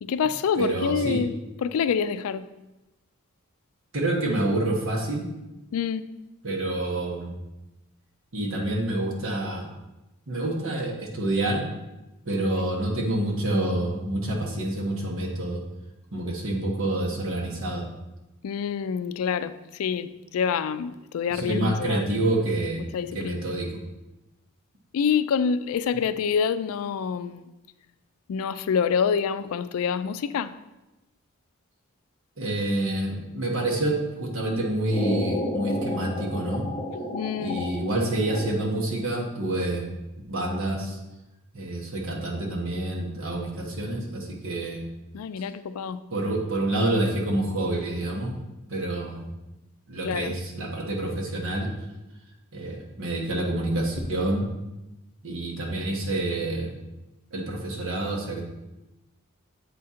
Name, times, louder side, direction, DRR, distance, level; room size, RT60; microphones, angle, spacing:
voice 1, 0.0-2.5 5.7-6.1 12.5-12.7 18.4-22.0 22.8-23.4 24.9-27.5 28.3-30.5 37.1-37.7 45.1-46.0 50.0-50.4, left 6 dB, 80° left, 14 dB, 0.3 m, -27 dB
voice 2, 0.6-1.2 3.9-5.3 6.4-7.4 8.3-9.7 10.3-11.6 12.2-15.6 16.1-17.9 21.3-22.8 23.1-23.8 32.4-36.6 37.4-39.9 40.3-41.0 41.5-44.8 46.1-48.3 48.7-49.3 49.9-51.7 52.5-54.5 55.2-56.7 57.3-58.4, right 1 dB, 65° right, -1 dB, 1.2 m, -27 dB
sound 1, 34.9-38.9, left 1 dB, 30° left, 1.1 m, -32 dB
7.5 x 3.7 x 4.3 m, 1.0 s
head